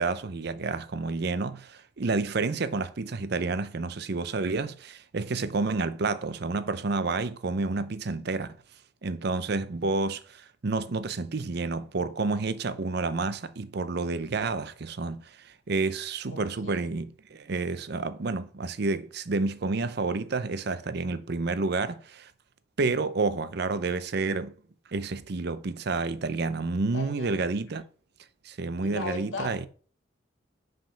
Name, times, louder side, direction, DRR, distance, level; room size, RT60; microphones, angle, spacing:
voice 1, 0.0-8.5 9.0-22.3 22.8-24.5 24.9-27.8 28.4-29.6, right 3 dB, 60° right, 0.6 m, -29 dB
voice 2, 16.3-16.9 26.9-27.5 28.8-29.5, left 3 dB, 85° left, 2.1 m, -38 dB
5.9 x 5.1 x 5.6 m
head